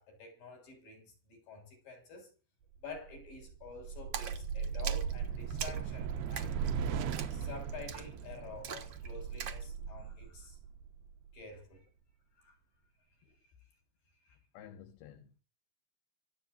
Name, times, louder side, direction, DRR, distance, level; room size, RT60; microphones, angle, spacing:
voice 1, 0.0-2.3 2.8-6.6 7.3-10.6 11.3-11.9 12.4-12.6 14.3-14.4, left 4 dB, 60° left, 7.8 m, -49 dB
sound 1, 2.9-11.4, right 7 dB, 80° right, 3.1 m, -38 dB
Splash splatter, 4.1-9.7, right 8 dB, 55° right, 1.9 m, -44 dB
voice 2, 14.5-15.4, left 9 dB, 75° left, 3.3 m, -52 dB
25.0 x 9.1 x 2.6 m
omnidirectional pair, 4.6 m